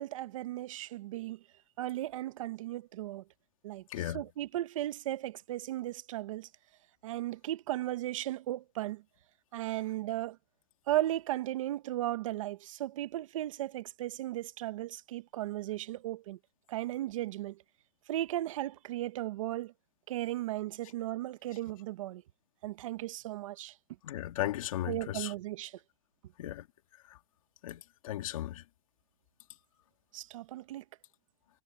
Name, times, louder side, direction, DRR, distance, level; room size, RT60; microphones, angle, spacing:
voice 1, 0.0-1.4 1.8-3.2 3.6-6.5 7.0-9.0 9.5-10.4 10.9-16.4 16.7-17.6 18.1-19.7 20.1-22.2 22.6-23.7 24.9-25.8 30.1-30.8, right 14 dB, 65° right, 1.0 m, -36 dB
voice 2, 3.9-4.2 24.0-25.3 26.4-26.7 27.1-27.2 27.6-28.6, left 13 dB, 70° left, 2.4 m, -36 dB
supercardioid pair, 170°, 18 cm